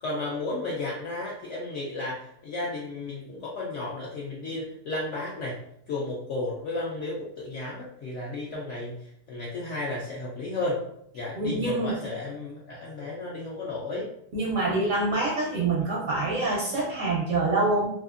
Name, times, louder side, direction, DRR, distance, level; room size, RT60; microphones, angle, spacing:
voice 1, 0.0-5.6 5.9-10.8 11.1-14.1, left 2 dB, 70° left, -5 dB, 0.7 m, -33 dB
voice 2, 11.4-12.0 14.3-17.9, right 2 dB, 65° right, -4 dB, 0.8 m, -26 dB
2.8 x 2.5 x 2.4 m, 0.74 s
omnidirectional pair, 1.8 m